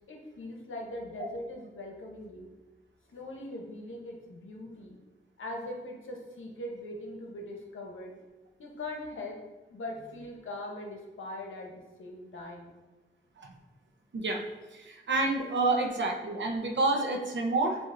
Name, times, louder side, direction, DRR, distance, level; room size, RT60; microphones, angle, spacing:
voice 1, 0.1-2.5 3.1-5.0 5.4-8.1 8.6-9.4 9.7-12.7 15.8-15.9 16.9-17.0 17.7-17.8, left 1 dB, 75° left, 1 dB, 0.9 m, -41 dB
voice 2, 14.7-17.8, right 2 dB, 60° right, 2 dB, 0.7 m, -28 dB
7.2 x 2.6 x 2.6 m, 1.1 s
cardioid pair, 70°, 21 cm